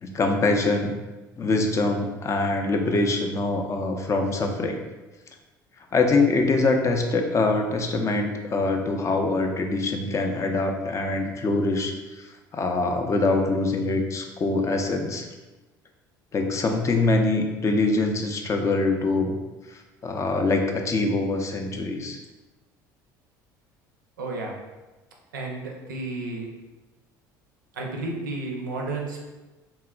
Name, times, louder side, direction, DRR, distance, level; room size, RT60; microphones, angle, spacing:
voice 1, 0.0-0.9 1.4-4.8 5.9-15.3 16.3-19.4 19.7-22.2, left 3 dB, 30° left, 4 dB, 0.4 m, -24 dB
voice 2, 24.2-24.6 25.3-26.5 27.7-29.2, right 2 dB, 85° right, 0 dB, 0.4 m, -32 dB
2.9 x 2.3 x 2.2 m, 1.1 s
hypercardioid pair, 65°, 10 cm